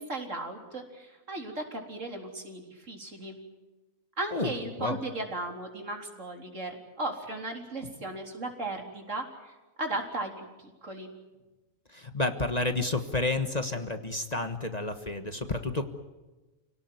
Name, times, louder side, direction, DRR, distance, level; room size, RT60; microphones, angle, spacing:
voice 1, 0.0-3.4 4.2-11.1, right 2 dB, 65° right, 3 dB, 4.2 m, -36 dB
voice 2, 11.9-15.9, left 2 dB, 30° left, 8 dB, 1.5 m, -30 dB
29.0 x 18.0 x 9.5 m, 1.2 s
omnidirectional pair, 1.4 m